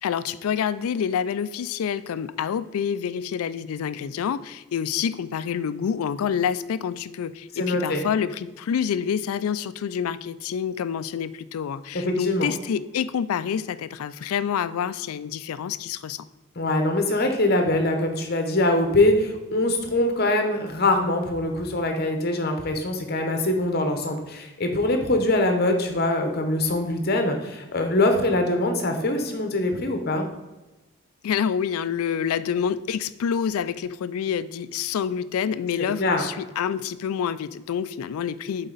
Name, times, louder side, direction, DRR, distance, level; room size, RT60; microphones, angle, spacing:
voice 1, 0.0-16.2 31.2-38.7, left 7 dB, 80° left, 16 dB, 0.3 m, -27 dB
voice 2, 7.5-8.0 11.9-12.5 16.6-30.3 36.0-36.3, left 2 dB, 45° left, 5 dB, 0.9 m, -23 dB
7.7 x 4.1 x 3.9 m, 1.1 s
head